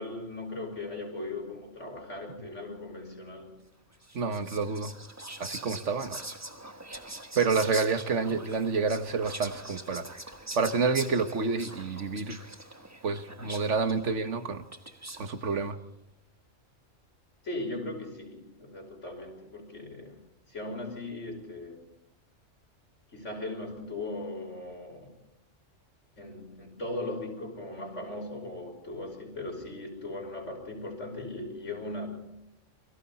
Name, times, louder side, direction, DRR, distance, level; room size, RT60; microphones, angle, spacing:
voice 1, 0.0-3.6 17.4-21.8 23.1-25.1 26.2-32.1, left 2 dB, 70° left, 1 dB, 5.9 m, -38 dB
Whispering, 4.0-15.4, right 1 dB, 15° right, 1.2 m, -43 dB
voice 2, 4.1-4.9 5.4-6.2 7.4-10.1 10.6-12.4 13.0-14.6 15.2-15.8, right 4 dB, 70° right, 9 dB, 1.7 m, -28 dB
29.0 x 23.0 x 4.2 m, 0.89 s
omnidirectional pair, 1.3 m